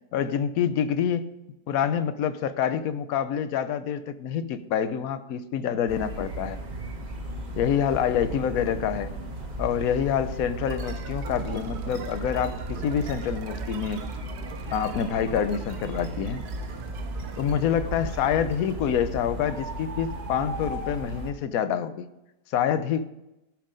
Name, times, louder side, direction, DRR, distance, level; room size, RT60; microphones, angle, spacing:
voice 1, 0.1-1.3 1.7-6.6 7.6-9.1 9.6-14.0 14.7-16.4 17.4-22.1 22.5-23.1, left 8 dB, 65° left, 12 dB, 1.1 m, -27 dB
sound 1, 5.9-21.3, right 1 dB, 30° right, 1.4 m, -35 dB
sound 2, 10.7-19.0, right 6 dB, 75° right, 1.4 m, -44 dB
13.5 x 6.0 x 5.1 m, 0.93 s
omnidirectional pair, 1.7 m